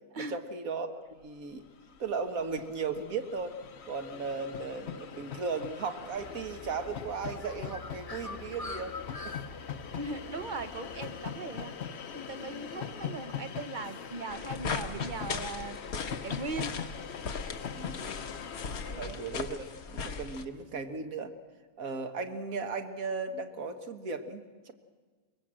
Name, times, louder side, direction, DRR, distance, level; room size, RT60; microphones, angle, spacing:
voice 1, 0.2-1.6 2.0-3.6 3.8-8.9 9.2-9.4 17.7-18.0 19.0-21.3 21.8-24.7, right 4 dB, 70° right, 7 dB, 1.8 m, -36 dB
Train, 1.6-1.7 1.8-20.2, left 7 dB, 50° left, 1.0 m, -42 dB
Bird, 6.1-11.4, left 3 dB, 25° left, 1.1 m, -45 dB
voice 2, 9.9-15.8 16.2-16.8 18.8-19.2, right 3 dB, 35° right, 10 dB, 1.0 m, -39 dB
sound 1, 14.3-20.4, left 5 dB, 75° left, 1.7 m, -38 dB
23.5 x 21.5 x 7.6 m, 1.5 s
omnidirectional pair, 1.6 m